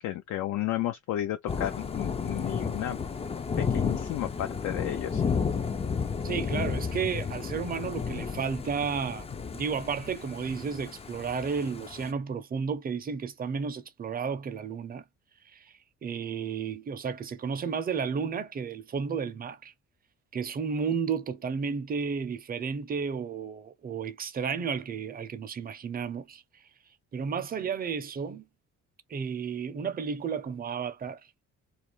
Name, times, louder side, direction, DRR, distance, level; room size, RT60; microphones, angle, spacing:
voice 1, 0.0-3.0 3.7-5.2, left 13 dB, 75° left, 0.5 m, -32 dB
Thunder / Rain, 1.5-12.1, left 6 dB, 20° left, 0.4 m, -32 dB
voice 2, 6.2-9.3 9.5-15.0 15.5-15.7 16.0-19.7 20.3-26.4 27.1-28.4 29.1-31.2, right 6 dB, 30° right, 0.5 m, -32 dB
2.5 x 2.0 x 3.0 m
cardioid pair, 90°, 30 cm